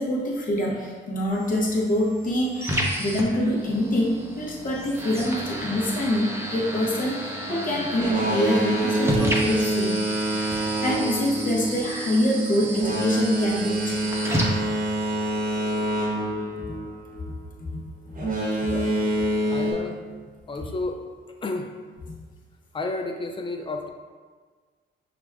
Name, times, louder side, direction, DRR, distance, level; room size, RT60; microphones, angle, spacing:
voice 1, 0.0-7.2 7.5-9.9 10.3-14.0 16.7-16.8 17.7-17.8 20.6-20.7, left 1 dB, 45° left, -2 dB, 0.9 m, -25 dB
sound 1, 1.3-15.3, right 1 dB, 10° right, 0.6 m, -32 dB
Boat Water vehicle, 7.9-17.3 18.1-19.7, right 1 dB, 45° right, 1.0 m, -26 dB
voice 2, 19.5-20.0 20.5-21.0 21.4-21.7 22.7-23.9, left 2 dB, 25° left, 4 dB, 0.4 m, -31 dB
5.8 x 2.3 x 2.3 m, 1.5 s
cardioid pair, 90°, 20 cm